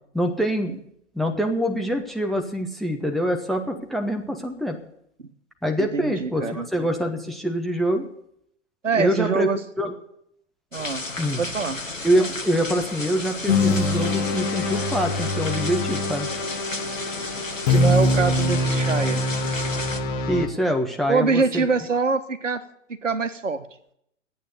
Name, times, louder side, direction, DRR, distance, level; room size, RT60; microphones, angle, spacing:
voice 1, 0.1-0.7 1.1-4.8 5.6-8.1 8.9-9.5 9.8-9.9 11.2-11.4 12.0-16.3 20.3-21.6, equal, ahead, 4 dB, 0.7 m, -25 dB
voice 2, 5.8-6.7 8.8-9.6 10.7-11.0 11.4-11.8 17.7-19.2 21.1-22.6 22.9-23.7, right 4 dB, 75° right, 10 dB, 1.3 m, -24 dB
sound 1, 10.7-20.0, left 2 dB, 90° left, 1.3 m, -33 dB
sound 2, 13.5-20.5, left 2 dB, 40° left, 1.8 m, -24 dB
12.0 x 8.7 x 9.5 m, 0.73 s
figure-of-eight pair, 115°, 38 cm